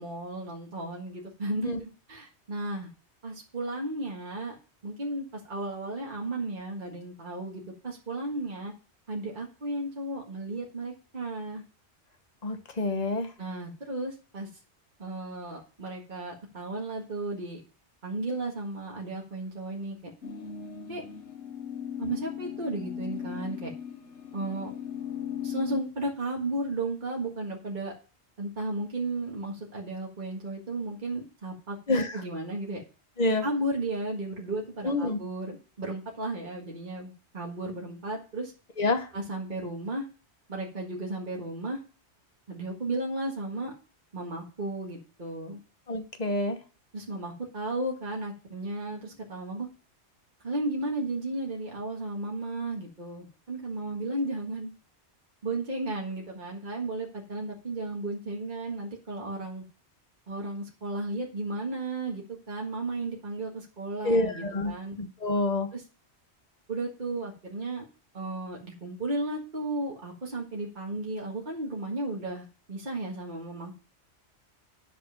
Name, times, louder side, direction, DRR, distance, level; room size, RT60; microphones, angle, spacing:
voice 1, 0.0-2.9 3.2-4.6 4.8-8.7 9.1-11.6 13.4-14.5 15.0-17.6 18.0-20.1 20.9-21.0 22.0-23.7 24.3-24.7 25.4-27.9 28.4-32.8 33.4-38.5 39.1-40.1 40.5-41.8 42.5-43.7 44.1-45.6 46.9-49.7 50.4-54.7 55.4-59.6 60.3-65.0 65.7-65.8 66.7-67.9 68.1-73.7, right 2 dB, 45° right, -2 dB, 1.9 m, -34 dB
voice 2, 12.4-13.3 31.9-32.2 33.2-33.4 34.8-35.2 38.8-39.1 45.9-46.6 64.0-65.7, left 2 dB, 40° left, 7 dB, 1.2 m, -27 dB
sound 1, 20.2-25.8, left 8 dB, 80° left, 1.3 m, -37 dB
10.0 x 5.3 x 5.7 m, 0.36 s
omnidirectional pair, 1.2 m